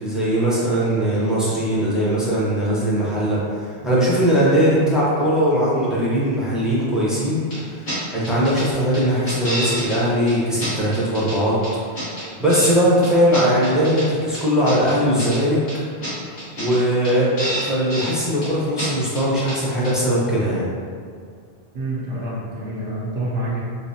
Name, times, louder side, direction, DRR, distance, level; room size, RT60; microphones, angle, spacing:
voice 1, 0.0-7.4 8.1-11.6 12.4-15.6 16.6-20.7, equal, ahead, -9 dB, 0.6 m, -20 dB
sound 1, 7.5-7.6 7.9-8.0 8.2-8.7 8.9-10.0 10.3-10.4 10.6-11.4 11.6-12.7 13.0-14.1 14.3-15.4 15.7-15.8 16.0-16.1 16.4-16.8 17.0-17.1 17.4-18.2 18.4-18.5 18.8-18.9 19.2-19.6 19.8-19.9, equal, 50° left, 1.4 m, -28 dB
voice 2, 21.7-23.6, right 1 dB, 70° right, -9 dB, 0.9 m, -27 dB
4.9 x 2.1 x 2.6 m, 2.2 s
omnidirectional pair, 1.1 m